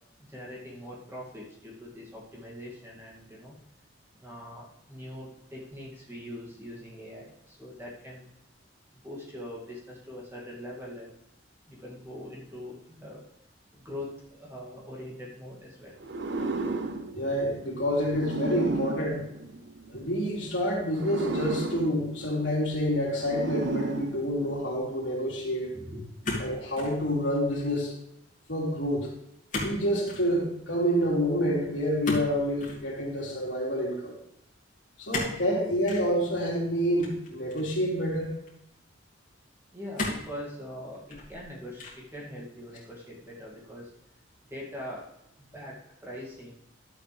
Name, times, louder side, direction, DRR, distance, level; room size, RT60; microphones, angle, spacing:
voice 1, 0.3-3.6 4.2-8.2 9.0-11.1 11.7-13.2 13.7-15.9 25.7-26.4 39.7-43.9 44.5-45.1 45.4-46.5, left 1 dB, 15° right, -4 dB, 2.3 m, -42 dB
sound 1, 16.0-20.1 20.8-24.8, right 3 dB, 65° right, 0.7 m, -34 dB
voice 2, 17.1-19.2 19.9-25.8 26.4-27.9 28.5-29.1 29.6-34.2 35.0-38.3, equal, 70° left, -3 dB, 3.3 m, -28 dB
sound 2, 26.2-27.0 27.4-27.8 29.5-29.8 30.0-30.3 32.0-32.8 35.1-35.4 35.9-36.1 37.0-37.8 38.5-38.6 40.0-40.3 40.9-41.4 41.8-42.1, left 2 dB, 40° left, 2.5 m, -34 dB
12.0 x 7.7 x 3.4 m, 0.80 s
head